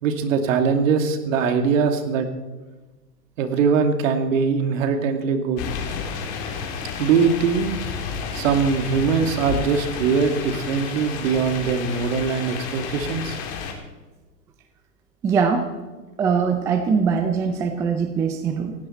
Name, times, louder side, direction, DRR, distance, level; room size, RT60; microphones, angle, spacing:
voice 1, 0.0-2.3 3.4-5.6 7.0-7.7 8.3-13.4, right 5 dB, 50° right, 7 dB, 2.4 m, -21 dB
sound 1, 5.6-13.7, left 6 dB, 35° left, 3.7 m, -31 dB
voice 2, 15.2-15.7 16.2-18.7, right 6 dB, 5° right, 7 dB, 0.4 m, -22 dB
17.5 x 16.5 x 4.4 m, 1.2 s
hypercardioid pair, 125°, 48 cm